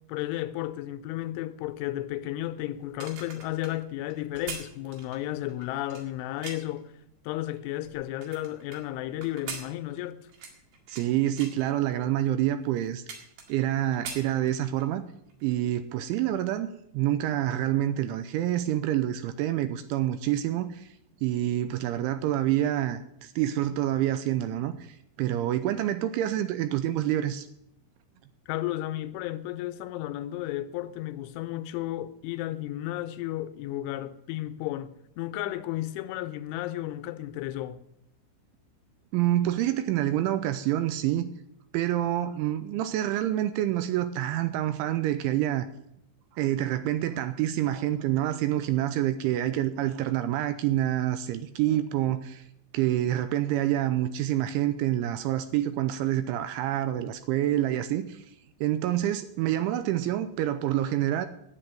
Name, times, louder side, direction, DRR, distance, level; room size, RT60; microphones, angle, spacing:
voice 1, 0.1-6.9 7.2-10.2 28.5-34.9 35.2-37.8, left 14 dB, 80° left, 3.1 m, -33 dB
sound 1, 2.8-6.8 7.4-8.8 9.2-11.1 11.4-11.6 12.2-12.3 12.6-13.7 13.9-14.9 15.3-15.5, right 5 dB, 65° right, 3.8 m, -42 dB
voice 2, 10.9-15.0 15.4-16.7 16.9-20.9 21.2-27.5 39.1-41.3 41.7-45.7 46.3-52.4 52.7-58.3 58.6-61.3, right 13 dB, 85° right, 3.0 m, -27 dB
11.5 x 8.5 x 8.9 m
omnidirectional pair, 5.6 m